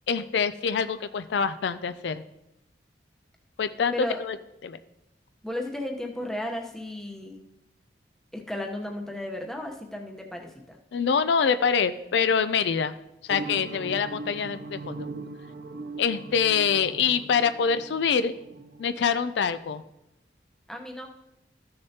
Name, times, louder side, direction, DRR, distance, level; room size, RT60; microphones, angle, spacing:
voice 1, 0.1-2.2 3.6-3.9 4.2-4.4 4.6-4.8 10.9-12.9 13.2-15.1 16.0-18.3 18.8-19.8, left 6 dB, 70° left, 12 dB, 0.4 m, -25 dB
voice 2, 5.4-7.4 8.3-10.8 20.7-21.1, left 1 dB, 5° left, 1 dB, 0.8 m, -34 dB
sound 1, 13.3-19.5, right 3 dB, 55° right, 0.5 m, -40 dB
13.5 x 6.6 x 2.8 m, 0.87 s
head